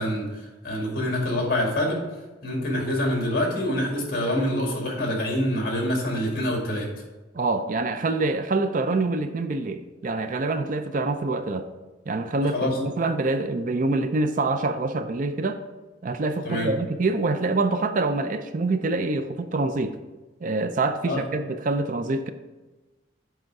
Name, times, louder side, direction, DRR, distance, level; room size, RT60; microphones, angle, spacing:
voice 1, 0.0-2.0 2.4-6.9 12.4-12.8 16.4-16.7 21.1-21.2, left 1 dB, 50° left, 0 dB, 2.2 m, -26 dB
voice 2, 7.3-11.7 12.1-15.6 16.0-20.0 20.4-22.3, right 3 dB, 45° right, 9 dB, 0.4 m, -25 dB
7.7 x 4.9 x 4.7 m, 1.2 s
head